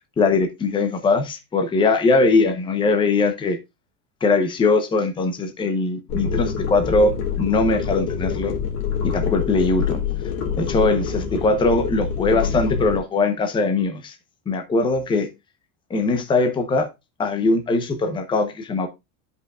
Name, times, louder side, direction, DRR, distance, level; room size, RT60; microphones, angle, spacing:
voice 1, 0.2-3.6 4.2-8.5 9.1-10.0 10.6-14.1 14.5-15.3 15.9-16.9 17.2-18.9, left 3 dB, 10° left, 0.8 m, -21 dB
sound 1, 6.1-13.0, left 6 dB, 40° left, 2.1 m, -26 dB
12.5 x 5.5 x 2.3 m
cardioid pair, 170°, 44 cm